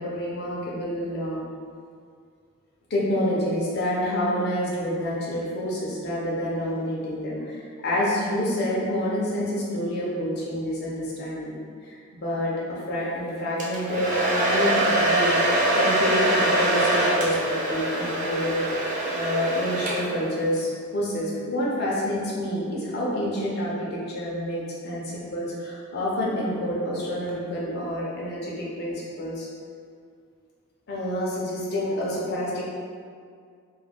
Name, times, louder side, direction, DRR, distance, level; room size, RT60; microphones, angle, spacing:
voice 1, 0.0-1.4 2.9-11.6 11.8-15.4 15.7-18.6 19.1-29.5 30.9-32.6, equal, 45° left, -5 dB, 0.6 m, -28 dB
Domestic sounds home sounds, 13.6-20.3, right 1 dB, 35° right, 0.4 m, -23 dB
2.3 x 2.2 x 3.4 m, 2.2 s
head